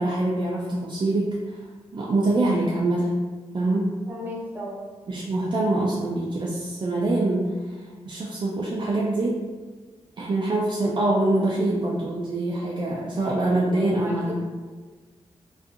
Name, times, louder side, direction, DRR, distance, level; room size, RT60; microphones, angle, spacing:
voice 1, 0.0-1.6 1.9-3.1 3.5-3.9 5.1-9.4 10.2-14.4, right 2 dB, 45° right, -5 dB, 0.4 m, -24 dB
voice 2, 4.1-4.8 13.6-14.4, left 1 dB, 20° right, -6 dB, 0.8 m, -35 dB
2.6 x 2.4 x 2.4 m, 1.4 s
wide cardioid pair, 115°, 11 cm